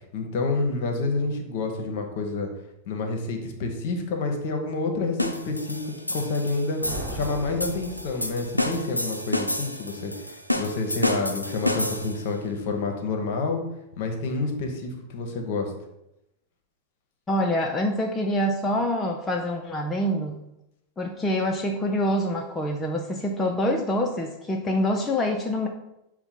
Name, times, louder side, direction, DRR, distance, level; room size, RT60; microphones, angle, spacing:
voice 1, 0.1-2.5 2.9-13.6 14.0-15.7, left 3 dB, 50° left, 4 dB, 0.7 m, -28 dB
sound 1, 5.2-12.3, left 1 dB, 85° left, 0.4 m, -30 dB
sound 2, 6.8-8.8, right 1 dB, 25° right, 1.2 m, -37 dB
voice 2, 17.3-20.4 21.0-25.7, left 1 dB, 15° left, 1 dB, 0.4 m, -26 dB
5.6 x 2.1 x 4.3 m, 0.87 s
figure-of-eight pair, 90°, 0 cm